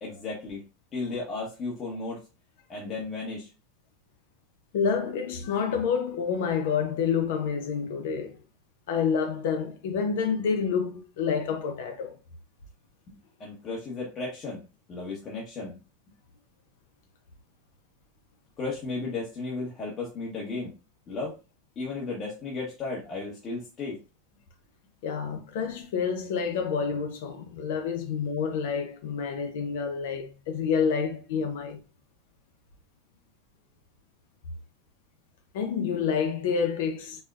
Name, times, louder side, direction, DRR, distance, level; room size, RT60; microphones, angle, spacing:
voice 1, 0.0-0.6 0.9-2.2 2.7-3.5 13.1-14.6 14.9-15.7 18.6-20.7 21.1-21.4 21.8-24.0, left 3 dB, 35° left, 0.9 m, -34 dB
voice 2, 4.7-8.4 8.9-12.1 25.0-31.8 35.5-37.2, left 6 dB, 80° left, 0.6 m, -28 dB
4.2 x 2.1 x 2.4 m
supercardioid pair, 130°, 0 cm